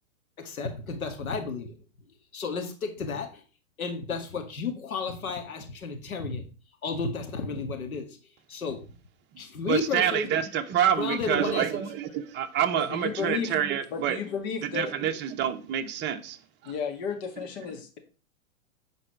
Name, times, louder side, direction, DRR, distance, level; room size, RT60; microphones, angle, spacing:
voice 1, 0.4-1.7 2.3-3.4 3.8-6.4 6.8-8.1 8.5-8.8 9.4-10.3 10.9-11.7, left 5 dB, 85° left, 2.0 m, -32 dB
voice 2, 9.6-14.2 14.6-16.4 16.6-16.7, right 9 dB, 25° right, 0.9 m, -27 dB
voice 3, 12.7-13.5 13.9-14.9 16.7-18.0, left 6 dB, 50° left, 2.1 m, -33 dB
9.9 x 4.1 x 4.5 m
hypercardioid pair, 115°, 41 cm